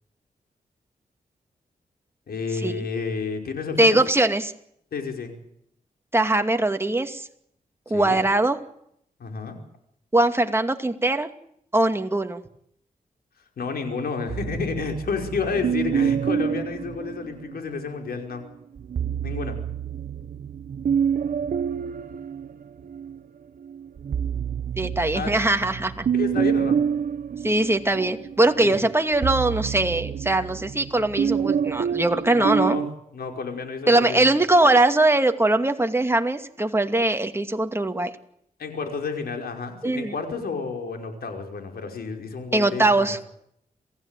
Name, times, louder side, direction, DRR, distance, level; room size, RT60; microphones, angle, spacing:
voice 1, 2.3-4.0 4.9-5.3 7.9-8.2 9.2-9.6 13.6-18.4 19.2-19.6 25.1-25.3 26.1-26.8 28.6-28.8 32.3-32.9 33.1-34.4 38.6-43.2, left 5 dB, 80° left, 4 dB, 5.2 m, -30 dB
voice 2, 3.8-4.5 6.1-7.3 7.9-8.6 10.1-11.3 11.7-12.4 24.8-26.1 27.4-32.8 33.9-38.1 39.8-40.1 42.5-43.2, right 2 dB, 15° right, 6 dB, 2.4 m, -21 dB
sound 1, 14.3-17.8 18.8-23.2 23.6-32.9, right 7 dB, 65° right, 1.1 m, -27 dB
27.0 x 16.5 x 9.1 m, 0.72 s
cardioid pair, 65°, 16 cm